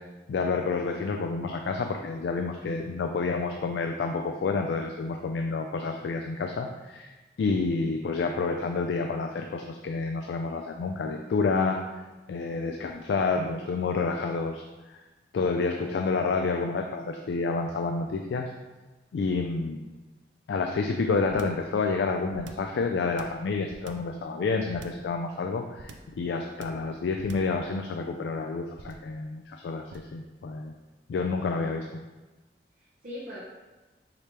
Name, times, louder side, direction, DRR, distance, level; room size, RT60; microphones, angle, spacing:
voice 1, 0.3-7.1 7.4-11.8 12.3-14.6 14.9-15.0 15.3-18.5 19.1-19.8 20.5-30.7 31.1-32.0, left 4 dB, 75° left, 3 dB, 0.3 m, -29 dB
sound 1, 21.3-21.7 22.3-22.7 23.2-24.2 24.7-25.1 25.8-26.2 26.6-26.9 27.2-27.6 28.7-29.1 29.9-30.2, right 3 dB, 90° right, 0.4 m, -45 dB
voice 2, 31.3-31.7 32.8-33.4, left 1 dB, 45° right, -9 dB, 0.8 m, -42 dB
4.8 x 2.9 x 3.3 m, 1.2 s
head